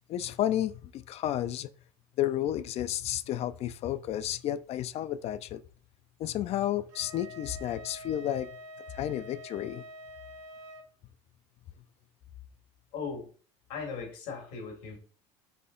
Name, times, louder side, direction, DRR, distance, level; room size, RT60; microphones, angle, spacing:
voice 1, 0.1-1.7 2.2-5.6 6.2-8.5 8.9-9.8, left 12 dB, 45° left, 0.4 m, -31 dB
Wind instrument woodwind instrument, 6.9-10.9, left 1 dB, 85° right, 0.9 m, -46 dB
voice 2, 12.9-13.3 13.7-15.0, left 5 dB, 80° left, 1.9 m, -38 dB
4.1 x 2.7 x 3.8 m
supercardioid pair, 100°, 15 cm